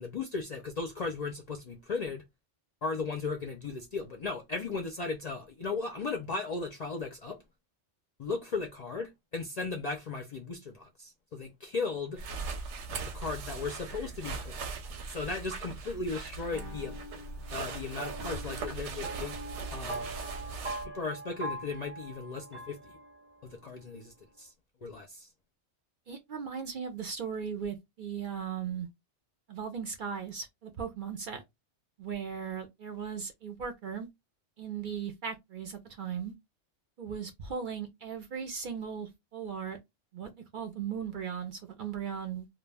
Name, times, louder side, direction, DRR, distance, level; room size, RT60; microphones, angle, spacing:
voice 1, 0.0-2.2 2.8-7.4 8.2-12.2 13.1-14.6 15.1-17.0 17.5-19.4 19.7-20.1 20.8-22.9 23.4-24.5 24.8-25.3, left 4 dB, 55° left, 0.4 m, -36 dB
searching through pockets and patting self down, 12.2-20.9, right 4 dB, 85° right, 0.9 m, -39 dB
sound 1, 16.5-23.5, right 1 dB, 15° right, 0.5 m, -42 dB
voice 2, 26.1-28.9 29.5-31.4 32.0-34.1 34.6-36.3 37.0-39.8 40.1-42.5, right 7 dB, 60° right, 0.6 m, -37 dB
2.2 x 2.2 x 3.2 m
omnidirectional pair, 1.2 m